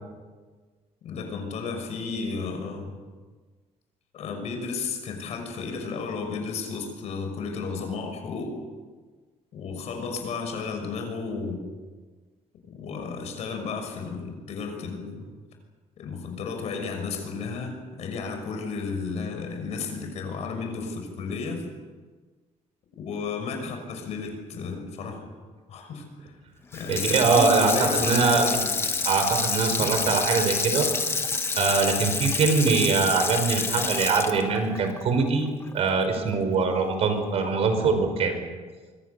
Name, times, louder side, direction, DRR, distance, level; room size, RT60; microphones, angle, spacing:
voice 1, 1.0-2.9 4.1-8.5 9.5-11.6 12.7-15.3 16.0-21.6 23.0-25.3 25.7-26.3 26.7-28.7, left 4 dB, 60° left, 5 dB, 6.1 m, -33 dB
Water tap faucet / Sink (filling or washing), 26.7-35.9 36.3-36.4, left 4 dB, 20° left, 1.6 m, -28 dB
voice 2, 26.9-28.5 29.1-30.9 31.5-35.5 35.7-38.4, right 4 dB, 55° right, 6 dB, 5.2 m, -23 dB
26.0 x 24.0 x 6.9 m, 1.4 s
cardioid pair, 175°, 13 cm